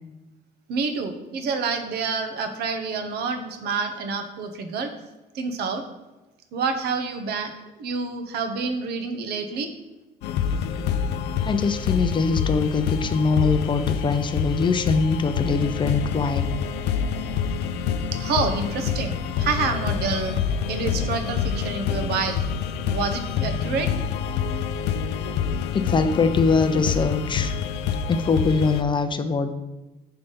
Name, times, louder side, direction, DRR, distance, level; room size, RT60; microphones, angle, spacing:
voice 1, 0.7-4.9 5.3-5.8 6.5-7.5 7.8-9.7 18.2-20.4 20.7-22.4 22.9-23.9, right 4 dB, 70° right, 7 dB, 0.9 m, -28 dB
sound 1, 10.2-28.8, left 7 dB, 80° left, 0.5 m, -27 dB
voice 2, 11.4-16.5 25.7-27.6 28.1-29.5, left 4 dB, 30° left, 8 dB, 0.6 m, -22 dB
6.6 x 3.4 x 5.4 m, 1.1 s
cardioid pair, 110°, 17 cm